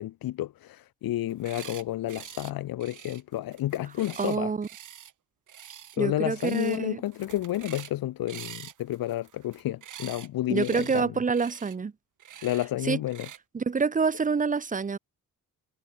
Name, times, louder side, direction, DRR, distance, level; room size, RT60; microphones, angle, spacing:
voice 1, 0.0-4.5 6.0-11.1 12.4-13.3, left 14 dB, 90° left, 1.1 m, -31 dB
sound 1, 1.3-1.8 2.1-2.5 2.8-5.1 5.5-6.0 6.3-6.8 7.1-8.0 8.3-10.3 10.5-11.0 11.3-11.8 12.2-12.7 13.1-13.4, right 10 dB, 60° right, 3.7 m, -45 dB
voice 2, 4.2-4.7 6.0-7.0 10.5-11.9 12.8-13.0 13.5-15.0, right 5 dB, 25° right, 1.1 m, -27 dB
wide cardioid pair, 170°, 34 cm